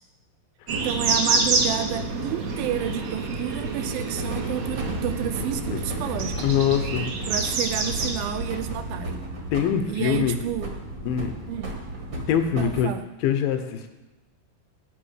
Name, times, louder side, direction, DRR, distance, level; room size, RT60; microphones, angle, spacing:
sound 1, 0.7-9.2, right 3 dB, 65° right, 1.8 m, -28 dB
voice 1, 0.7-6.5 7.3-9.2 9.9-10.7 11.5-11.7 12.5-13.1, right 10 dB, 80° right, 9 dB, 2.3 m, -30 dB
sound 2, 4.1-12.8, right 1 dB, 40° right, 1.9 m, -34 dB
voice 2, 6.4-7.1 9.5-10.4 11.0-11.3 12.3-12.9 13.2-13.9, left 8 dB, 75° left, 7 dB, 2.5 m, -23 dB
10.5 x 7.8 x 6.4 m, 1.1 s
omnidirectional pair, 4.4 m